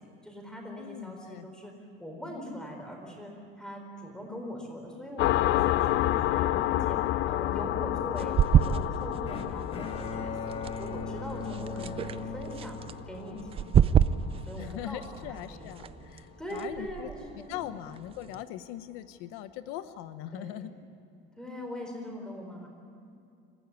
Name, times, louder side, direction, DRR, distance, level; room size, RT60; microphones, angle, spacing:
voice 1, 0.0-1.7 2.0-12.8 13.1-16.1 16.4-17.7 20.3-20.7 21.4-22.7, equal, 5° left, 2 dB, 4.4 m, -42 dB
voice 2, 0.8-1.5 11.4-12.0 14.6-20.7, left 12 dB, 85° left, 12 dB, 0.9 m, -41 dB
sound 1, 5.2-14.4, left 14 dB, 60° left, 0.6 m, -30 dB
sound 2, 8.2-18.4, right 9 dB, 25° right, 0.5 m, -30 dB
Bowed string instrument, 9.3-13.5, left 3 dB, 30° left, 1.7 m, -39 dB
26.5 x 15.0 x 9.7 m, 2.5 s
cardioid pair, 160°, 21 cm